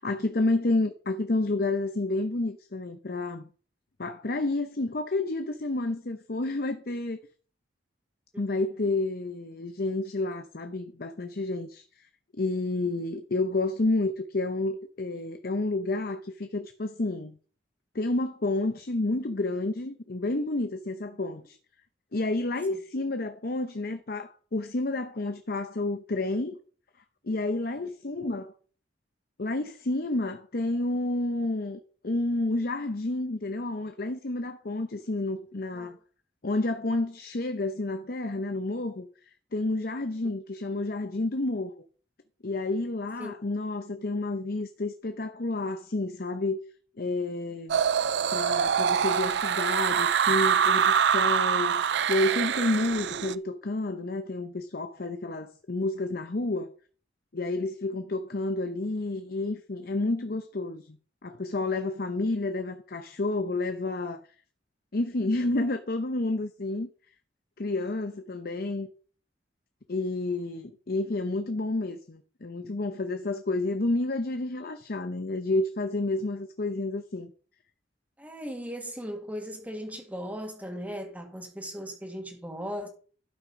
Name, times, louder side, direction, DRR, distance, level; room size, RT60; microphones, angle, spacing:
voice 1, 0.0-3.4 4.0-7.2 8.4-12.1 12.4-17.3 17.9-21.6 22.1-26.6 27.2-28.5 29.4-36.0 36.4-39.1 39.5-41.8 42.4-46.6 47.0-47.8 48.3-51.8 52.1-56.7 57.3-61.0 61.2-64.2 64.9-66.9 67.6-68.9 69.9-77.3, left 2 dB, 55° left, 0.8 m, -30 dB
sound 1, 47.7-53.3, right 7 dB, 70° right, 0.4 m, -25 dB
voice 2, 78.2-82.9, equal, 10° right, 2.0 m, -38 dB
12.0 x 5.9 x 5.3 m
head